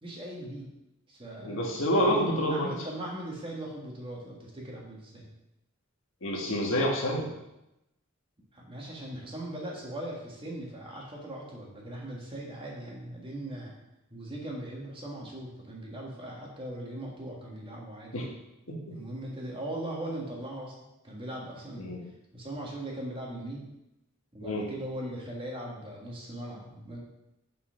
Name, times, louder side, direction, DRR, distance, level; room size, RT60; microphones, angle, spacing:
voice 1, 0.0-0.7 1.1-5.3 8.5-13.7 14.1-18.3 18.9-20.8 21.0-21.9 22.3-23.7 24.3-27.0, right 1 dB, 25° right, -2 dB, 1.6 m, -39 dB
voice 2, 1.4-2.7 6.2-7.3 18.1-18.3 18.7-18.9 21.8-22.0 24.4-24.7, equal, 70° left, -1 dB, 1.6 m, -28 dB
5.6 x 5.0 x 5.7 m, 0.91 s
head